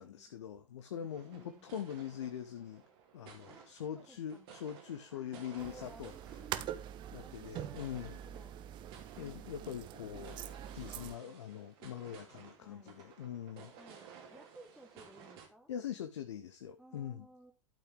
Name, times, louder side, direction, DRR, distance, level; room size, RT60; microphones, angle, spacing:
voice 1, 0.0-2.8 3.1-6.1 7.1-8.2 9.2-13.7 15.7-17.3, left 9 dB, 60° left, 0.8 m, -43 dB
voice 2, 1.0-1.7 3.5-4.5 5.1-6.8 7.2-8.5 10.9-11.5 12.6-13.0 13.8-15.7 16.8-17.5, right 1 dB, ahead, 1.0 m, -59 dB
sound 1, 1.0-15.5, right 7 dB, 45° right, 2.4 m, -56 dB
sound 2, 5.6-11.2, right 11 dB, 30° right, 0.6 m, -44 dB
11.5 x 5.6 x 3.6 m
figure-of-eight pair, 95°, 17 cm